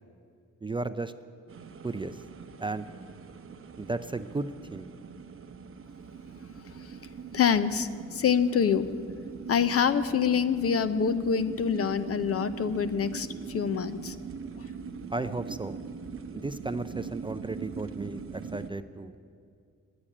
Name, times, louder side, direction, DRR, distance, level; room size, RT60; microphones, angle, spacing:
voice 1, 0.6-1.1 1.8-2.2 2.6-2.9 3.8-4.9 15.1-15.8 16.3-19.2, right 3 dB, 15° right, 10 dB, 0.4 m, -34 dB
sound 1, 1.5-18.7, right 6 dB, 45° right, 0.8 m, -41 dB
voice 2, 7.3-8.9 9.5-14.2 14.6-14.7, left 7 dB, 50° left, 12 dB, 0.7 m, -26 dB
10.0 x 8.7 x 9.8 m, 2.4 s
cardioid pair, 70°, 30 cm